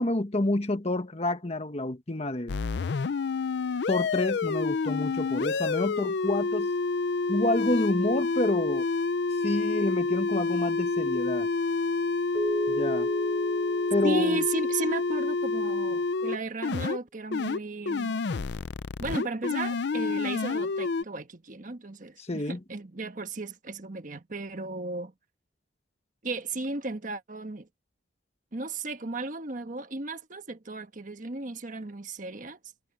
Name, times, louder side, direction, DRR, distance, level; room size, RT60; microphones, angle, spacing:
voice 1, 0.0-2.6 3.9-6.7 7.3-8.9 9.4-11.5 12.7-13.1 13.9-14.4 22.2-22.6, left 1 dB, 35° left, 1.3 m, -28 dB
sound 1, 2.5-16.4 16.6-17.0 17.3-17.6 17.9-21.0, left 4 dB, 60° left, 0.5 m, -28 dB
Keyboard (musical), 12.3-15.3, equal, 10° right, 5.8 m, -35 dB
voice 2, 14.0-18.2 19.0-25.1 26.2-27.7 28.5-32.6, right 2 dB, 45° right, 1.3 m, -34 dB
head